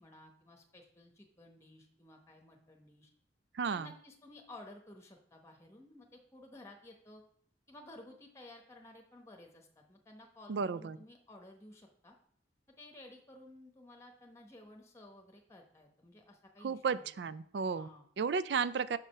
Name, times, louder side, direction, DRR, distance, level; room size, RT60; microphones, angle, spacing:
voice 1, 0.0-3.1 3.7-7.2 7.7-12.2 12.8-17.1 17.7-18.1, left 1 dB, 15° left, 3 dB, 1.0 m, -55 dB
voice 2, 3.5-3.9 10.5-11.0 16.6-17.9 18.2-19.0, right 5 dB, 70° right, 16 dB, 0.4 m, -33 dB
6.5 x 4.9 x 5.5 m, 0.62 s
head